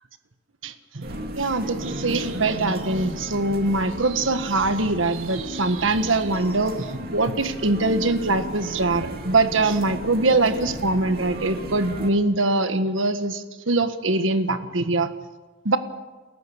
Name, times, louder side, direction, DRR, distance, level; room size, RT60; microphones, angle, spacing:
voice 1, 0.6-1.1 1.4-15.1 15.6-15.8, right 2 dB, 90° right, 9 dB, 1.5 m, -23 dB
sound 1, 1.0-12.1, right 1 dB, 50° right, 2.6 m, -34 dB
29.0 x 14.5 x 7.3 m, 1.3 s
head